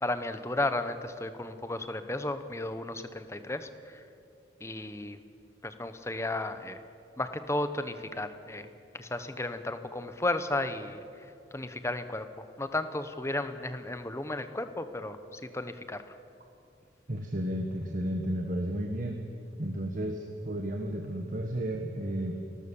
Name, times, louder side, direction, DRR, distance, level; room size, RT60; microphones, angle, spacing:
voice 1, 0.0-4.0 4.6-5.2 5.6-6.8 7.2-8.7 8.9-16.1, left 2 dB, 15° left, 10 dB, 1.0 m, -34 dB
voice 2, 17.1-19.2 19.6-22.4, right 1 dB, 45° right, 2 dB, 1.5 m, -33 dB
29.5 x 13.5 x 7.2 m, 2.6 s
head